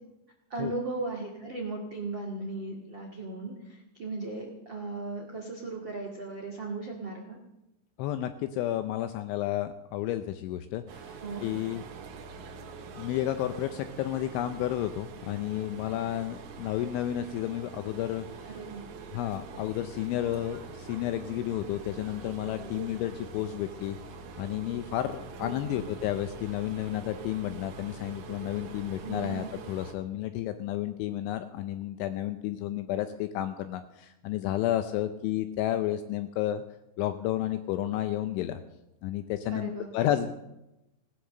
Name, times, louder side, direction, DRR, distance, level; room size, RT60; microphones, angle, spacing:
voice 1, 0.5-7.4 11.2-11.4 18.4-18.8 25.4-25.8 29.0-29.5 39.5-40.2, right 3 dB, 70° right, 1 dB, 1.1 m, -37 dB
voice 2, 8.0-10.8 11.4-11.8 12.9-18.3 19.1-24.0 24.4-36.6 37.0-38.6 39.0-40.3, left 13 dB, 80° left, 9 dB, 2.7 m, -31 dB
sound 1, 10.9-29.9, right 5 dB, 85° right, 4.2 m, -44 dB
18.0 x 9.9 x 6.5 m, 0.94 s
omnidirectional pair, 5.9 m